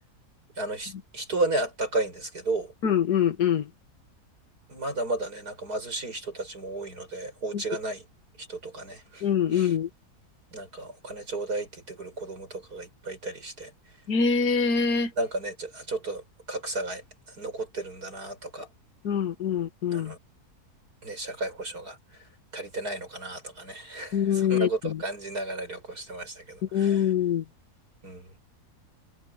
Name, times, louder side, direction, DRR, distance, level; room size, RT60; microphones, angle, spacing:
voice 1, 0.6-2.7 4.7-8.0 8.4-9.8 10.5-13.7 15.2-18.7 19.9-20.2 21.0-22.0 22.5-27.1 28.0-28.3, right 2 dB, 80° right, 7.6 m, -33 dB
voice 2, 2.8-3.7 9.2-9.9 14.1-15.1 19.0-20.1 24.1-25.0 26.7-27.4, left 7 dB, 90° left, 2.0 m, -24 dB
omnidirectional pair, 1.6 m